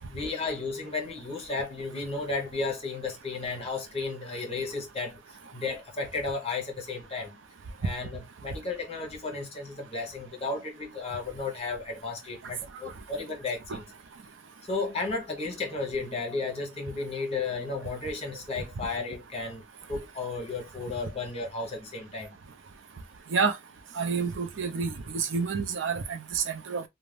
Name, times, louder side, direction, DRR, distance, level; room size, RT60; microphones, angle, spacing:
voice 1, 0.1-7.4 7.8-13.8 14.7-19.6 19.9-22.4, left 3 dB, 30° left, 0.9 m, -34 dB
voice 2, 23.9-26.8, right 5 dB, 60° right, 0.5 m, -29 dB
2.5 x 2.2 x 3.2 m
head